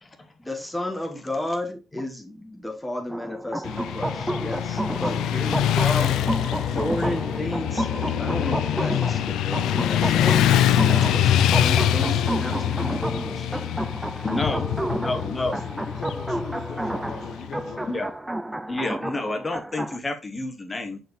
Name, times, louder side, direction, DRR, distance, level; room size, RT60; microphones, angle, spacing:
voice 1, 0.4-6.2 6.7-13.7, left 1 dB, 10° left, 1 dB, 1.6 m, -33 dB
sound 1, 3.1-20.0, right 1 dB, 10° right, 0.4 m, -31 dB
Motorcycle / Traffic noise roadway noise, 3.6-17.8, left 11 dB, 85° left, 0.4 m, -24 dB
voice 2, 6.0-7.4 14.6-17.9, left 5 dB, 65° left, 3 dB, 0.9 m, -40 dB
voice 3, 14.1-14.6 15.0-15.6 17.9-18.1 18.7-21.0, left 2 dB, 25° left, 6 dB, 1.2 m, -30 dB
6.0 x 4.7 x 3.3 m, 0.31 s
cardioid pair, 90°, 0 cm